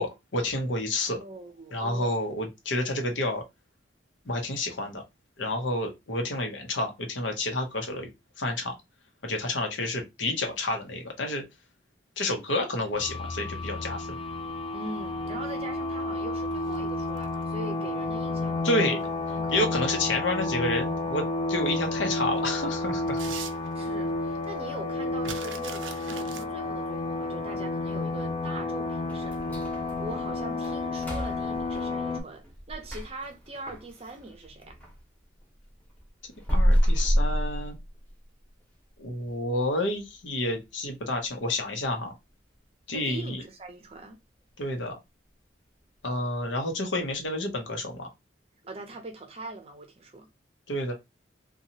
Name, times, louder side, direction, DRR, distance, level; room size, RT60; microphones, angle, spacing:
voice 1, 0.0-1.2 1.7-3.4 4.2-5.0 5.4-8.1 8.4-8.7 9.2-11.4 12.2-14.2 18.6-19.0 19.5-23.2 36.5-37.8 39.0-42.1 42.9-43.4 44.6-44.9 46.0-48.1 50.7-50.9, left 2 dB, 90° left, 0.8 m, -29 dB
voice 2, 1.0-2.2 14.7-19.0 19.4-19.7 23.7-34.8 42.9-44.2 48.6-50.3, right 2 dB, 30° right, 0.6 m, -42 dB
sound 1, 12.9-32.2, left 2 dB, 30° left, 0.4 m, -31 dB
sound 2, 16.5-17.5 19.1-19.8 20.4-20.5 21.7-21.8 22.2-24.1 24.4-24.5 24.7-26.4, right 8 dB, 90° right, 0.4 m, -42 dB
sound 3, 29.1-35.0 35.4-38.2 38.6-38.7 39.2-39.3 39.8-40.1 40.5-40.6 41.1-41.2, equal, 10° left, 0.8 m, -29 dB
2.8 x 2.3 x 2.7 m
head